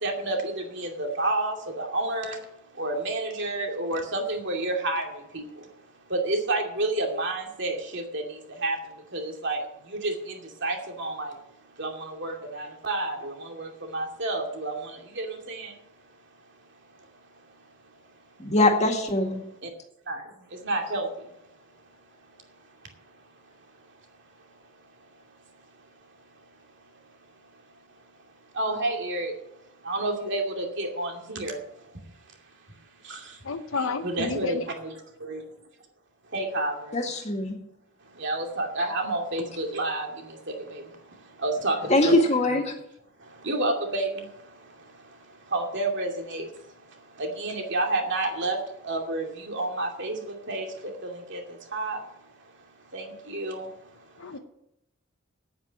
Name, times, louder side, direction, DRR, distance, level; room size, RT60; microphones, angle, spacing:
voice 1, 0.0-0.4 0.8-2.4 2.8-5.1 5.3-5.4 6.1-8.2 8.6-8.8 9.1-9.6 10.0-10.1 10.6-11.3 11.8-11.9 12.2-13.2 13.6-14.8 15.2-15.7 20.1-20.2 20.6-21.1 28.6-29.3 29.9-31.6 34.0-34.9 35.2-35.4 36.3-36.7 38.2-40.1 40.7-40.8 41.4-41.8 42.0-42.1 43.5-44.1 45.5-46.4 47.2-48.6 48.8-50.2 50.5-50.6 51.0-51.4 51.7-52.0 52.9-53.6, right 2 dB, 60° right, 2.6 m, -29 dB
voice 2, 18.4-19.4 36.9-37.6 41.9-42.8, left 2 dB, 35° left, 2.0 m, -22 dB
voice 3, 33.4-34.7 54.2-54.4, left 4 dB, 70° left, 0.9 m, -31 dB
9.1 x 8.9 x 8.8 m
head